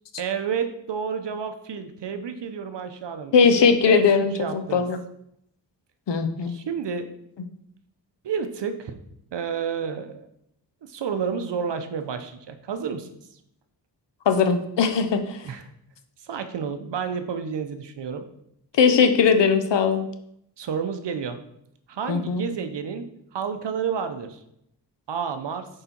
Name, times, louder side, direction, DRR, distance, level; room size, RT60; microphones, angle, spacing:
voice 1, 0.2-3.5 3.8-4.8 6.5-7.1 8.2-8.9 9.3-10.3 10.8-13.1 15.4-15.6 16.2-18.3 20.6-21.4 21.9-24.4 25.1-25.7, right 6 dB, 75° right, 9 dB, 0.8 m, -30 dB
voice 2, 3.3-5.0 6.1-6.5 14.3-15.4 18.7-20.1 22.1-22.4, left 5 dB, 75° left, 8 dB, 0.8 m, -19 dB
6.5 x 4.9 x 4.4 m, 0.75 s
wide cardioid pair, 105°, 43 cm